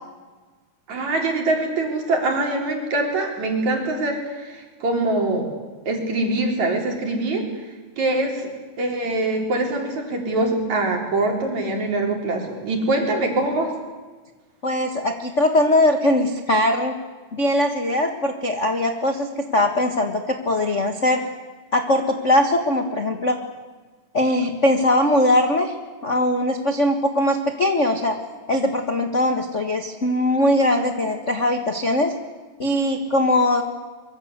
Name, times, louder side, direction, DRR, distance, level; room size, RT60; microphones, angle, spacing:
voice 1, 0.9-5.5 5.9-7.5 8.0-8.5 8.8-13.7, right 2 dB, 60° right, 2 dB, 5.2 m, -23 dB
voice 2, 14.6-16.9 17.3-21.2 21.7-23.4 24.1-25.7 26.0-28.2 28.5-32.1 32.6-33.6, left 1 dB, 35° left, 4 dB, 1.1 m, -20 dB
24.5 x 23.0 x 8.2 m, 1.3 s
omnidirectional pair, 3.6 m